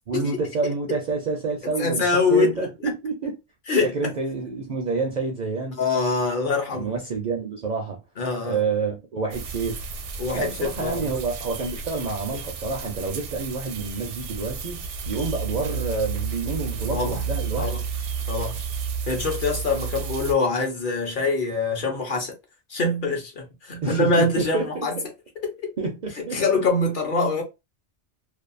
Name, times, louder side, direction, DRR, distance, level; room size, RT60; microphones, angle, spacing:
voice 1, 0.1-3.4 3.8-5.8 6.7-8.0 8.4-9.8 10.3-17.7 23.8-24.9 25.8-26.6, right 4 dB, 55° right, 0.5 m, -28 dB
voice 2, 1.8-2.5 3.7-4.1 5.8-6.9 8.2-8.6 10.2-11.1 16.9-17.2 17.6-17.8 18.3-18.6 19.1-22.3 22.7-25.0 25.4-25.7 26.3-27.4, left 3 dB, 55° left, 0.8 m, -24 dB
sound 1, 9.3-20.3, right 5 dB, 85° right, 0.9 m, -32 dB
2.6 x 2.3 x 2.4 m
omnidirectional pair, 1.2 m